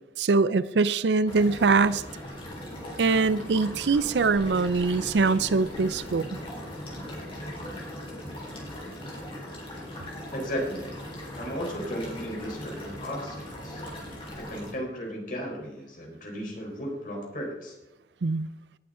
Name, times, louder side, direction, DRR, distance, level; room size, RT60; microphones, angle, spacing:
voice 1, 0.2-2.0 3.0-6.3 18.2-18.5, right 4 dB, 75° right, 16 dB, 0.5 m, -23 dB
sound 1, 1.3-14.7, left 1 dB, 30° left, 4.0 m, -39 dB
voice 2, 10.3-10.9 11.3-13.8 14.4-17.8, equal, 50° left, 0 dB, 4.3 m, -35 dB
18.0 x 8.6 x 3.8 m, 1.0 s
head